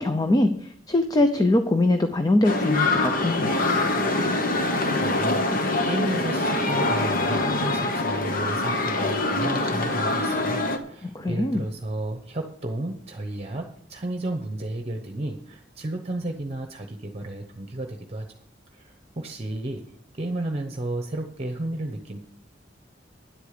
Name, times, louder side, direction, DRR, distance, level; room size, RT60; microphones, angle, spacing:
voice 1, 0.0-3.5 11.0-11.6, left 1 dB, 20° left, 7 dB, 0.6 m, -22 dB
sound 1, 2.4-10.8, left 2 dB, 50° left, 1.2 m, -24 dB
voice 2, 5.0-5.4 5.8-18.3 18.7-19.8 20.1-22.2, right 1 dB, 35° right, 5 dB, 1.0 m, -32 dB
10.5 x 8.3 x 6.7 m, 0.66 s
head